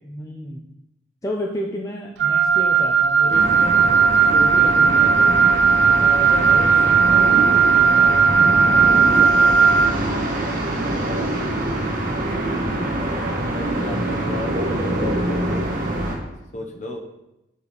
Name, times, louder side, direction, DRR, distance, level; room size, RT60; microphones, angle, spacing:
voice 1, 0.0-0.7 1.2-3.8 4.2-5.3 6.0-7.3 7.6-9.8, left 1 dB, 15° left, 0 dB, 0.5 m, -32 dB
Wind instrument woodwind instrument, 2.2-10.0, right 6 dB, 75° right, 0.5 m, -16 dB
sound 1, 3.3-16.2, right 1 dB, 50° right, 1.4 m, -25 dB
voice 2, 4.9-6.0 7.1-7.5 13.2-15.7 16.5-17.0, left 2 dB, 40° left, 3 dB, 1.0 m, -36 dB
7.0 x 4.8 x 5.1 m, 0.91 s
head